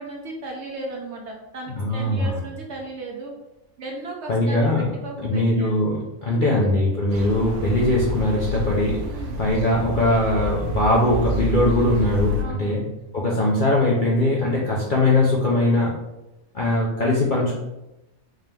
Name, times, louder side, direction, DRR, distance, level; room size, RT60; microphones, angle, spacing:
voice 1, 0.0-3.4 3.8-5.7 6.3-6.5 9.1-9.4 12.4-12.8, right 2 dB, 60° right, 0 dB, 0.8 m, -35 dB
voice 2, 1.8-2.4 4.3-4.8 5.2-12.8 13.1-15.9 16.5-17.6, left 1 dB, 55° left, -4 dB, 0.5 m, -21 dB
sound 1, 7.1-12.4, left 1 dB, 90° right, 1.1 m, -28 dB
3.7 x 2.8 x 3.3 m, 0.97 s
omnidirectional pair, 1.5 m